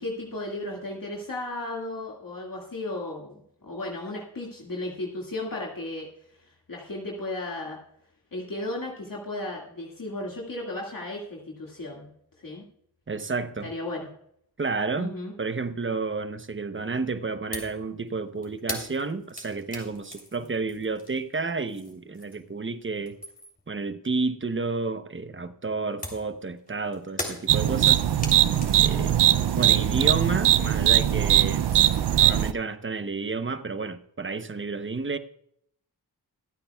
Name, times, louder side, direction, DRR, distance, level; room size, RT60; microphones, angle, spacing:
voice 1, 0.0-6.1 6.7-7.8 8.3-12.1 12.4-12.7 13.6-14.1 15.0-15.3 29.0-29.1, left 2 dB, 55° left, 2.1 m, -35 dB
voice 2, 13.1-13.7 14.6-15.1 15.4-23.2 23.7-28.0 28.8-29.1 29.5-31.7 32.2-35.2, right 4 dB, 30° right, 0.9 m, -31 dB
sound 1, 17.5-17.8 18.1-22.6 22.9-23.7 26.0-31.1 31.4-32.2, left 1 dB, 20° left, 3.3 m, -40 dB
sound 2, 27.5-32.5, right 11 dB, 85° right, 0.6 m, -21 dB
24.5 x 8.8 x 2.3 m
wide cardioid pair, 65°, 40 cm